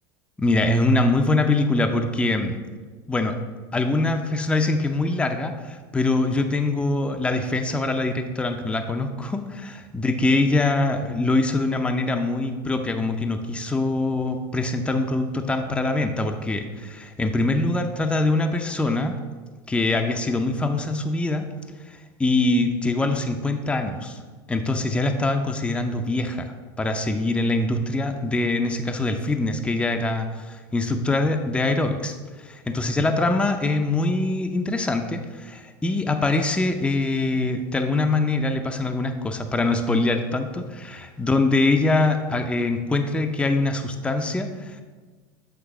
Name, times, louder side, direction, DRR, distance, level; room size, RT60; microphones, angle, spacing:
voice 1, 0.4-2.6 3.1-3.4 3.7-19.2 19.7-21.5 21.8-24.2 24.5-44.8, left 2 dB, 10° left, 5 dB, 0.5 m, -23 dB
8.0 x 3.1 x 4.8 m, 1.4 s
supercardioid pair, 105°, 11 cm